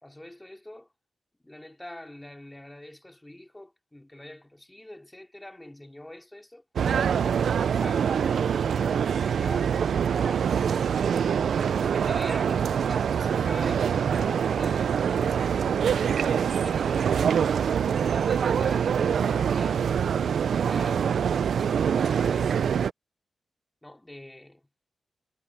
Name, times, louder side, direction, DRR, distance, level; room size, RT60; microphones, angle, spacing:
voice 1, 0.0-0.9 1.4-6.6 7.2-17.6 18.0-19.9 20.5-22.6 23.8-24.6, left 1 dB, 10° left, 2.9 m, -45 dB
sound 1, 6.8-22.9, right 7 dB, 85° right, 0.3 m, -24 dB
wide cardioid pair, 125°, 0 cm